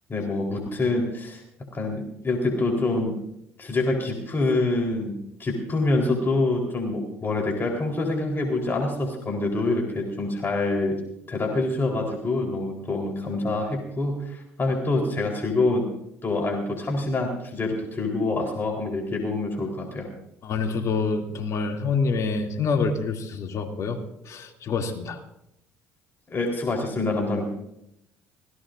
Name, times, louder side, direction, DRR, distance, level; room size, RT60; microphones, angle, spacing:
voice 1, 0.1-1.4 1.7-3.2 3.6-11.0 11.3-15.9 16.2-20.1 26.3-27.4, left 2 dB, 35° left, 0 dB, 4.1 m, -26 dB
voice 2, 20.4-24.0 24.3-25.2, left 4 dB, 55° left, 3 dB, 2.8 m, -26 dB
25.5 x 17.5 x 2.7 m, 0.78 s
hypercardioid pair, 70°, 7 cm